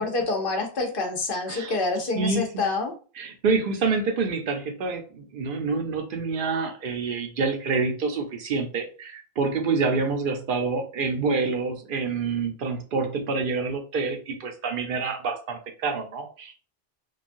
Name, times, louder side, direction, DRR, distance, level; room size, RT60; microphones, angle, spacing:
voice 1, 0.0-2.9, left 3 dB, 60° left, 2 dB, 0.9 m, -27 dB
voice 2, 1.5-2.6 3.2-16.5, right 4 dB, 60° right, 5 dB, 0.7 m, -27 dB
3.1 x 2.3 x 2.6 m, 0.38 s
omnidirectional pair, 1.1 m